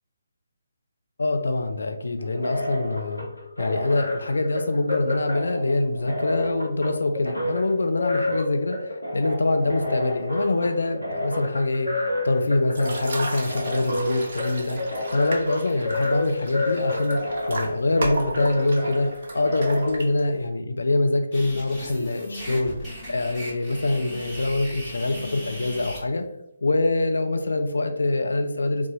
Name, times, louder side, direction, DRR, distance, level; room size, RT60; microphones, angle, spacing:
voice 1, 1.2-3.3 3.6-14.8 15.1-22.7 23.1-26.2 26.6-28.9, left 2 dB, 60° left, 5 dB, 0.5 m, -24 dB
sound 1, 2.2-19.9, left 1 dB, 90° left, 1.0 m, -30 dB
sound 2, 12.7-20.5, right 2 dB, 45° right, 0.6 m, -35 dB
sound 3, 21.3-26.0, equal, ahead, 1.1 m, -37 dB
3.9 x 2.4 x 2.8 m, 0.79 s
figure-of-eight pair, 145°, 0 cm